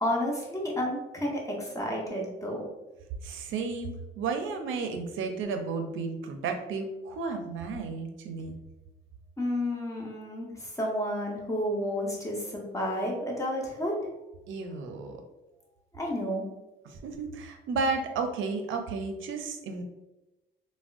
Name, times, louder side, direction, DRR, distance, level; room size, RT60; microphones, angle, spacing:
voice 1, 0.0-2.6 9.4-13.9 15.9-16.4, equal, 15° left, -2 dB, 0.9 m, -31 dB
voice 2, 3.2-8.5 14.5-15.2 16.8-19.8, right 4 dB, 80° right, 5 dB, 0.5 m, -33 dB
3.4 x 2.1 x 2.5 m, 1.0 s
cardioid pair, 90°, 20 cm